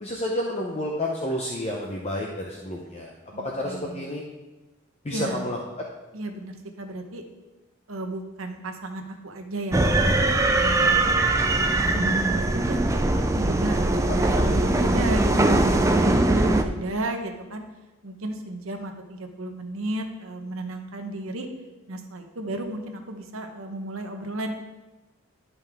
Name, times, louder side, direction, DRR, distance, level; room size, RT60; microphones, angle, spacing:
voice 1, 0.0-4.2 5.0-5.8 14.3-14.6, left 1 dB, 30° left, -1 dB, 0.7 m, -30 dB
voice 2, 3.3-4.1 5.1-5.5 6.1-7.2 7.9-10.2 10.7-11.2 11.6-17.6 18.0-21.5 21.9-24.5, right 1 dB, 65° right, 5 dB, 1.0 m, -34 dB
sound 1, 9.7-16.6, right 2 dB, 15° right, 0.4 m, -21 dB
11.0 x 5.5 x 3.5 m, 1.1 s
head